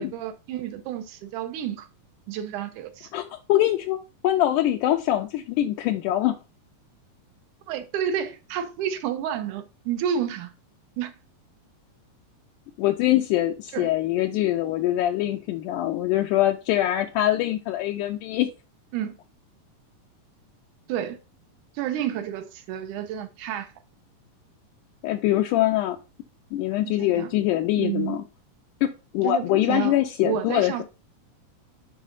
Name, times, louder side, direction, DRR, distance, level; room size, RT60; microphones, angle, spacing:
voice 1, 0.0-1.9 2.3-3.1 7.7-10.5 11.0-11.2 13.7-13.9 18.9-19.1 20.9-21.2 21.8-23.7 27.0-27.3 27.8-28.2 29.2-30.8, right 9 dB, 75° right, 2.1 m, -30 dB
voice 2, 3.1-4.0 4.2-6.4 12.8-18.5 25.0-26.0 26.5-28.2 28.8-28.9 29.1-30.8, left 13 dB, 80° left, 2.0 m, -23 dB
11.0 x 4.1 x 2.5 m
omnidirectional pair, 3.9 m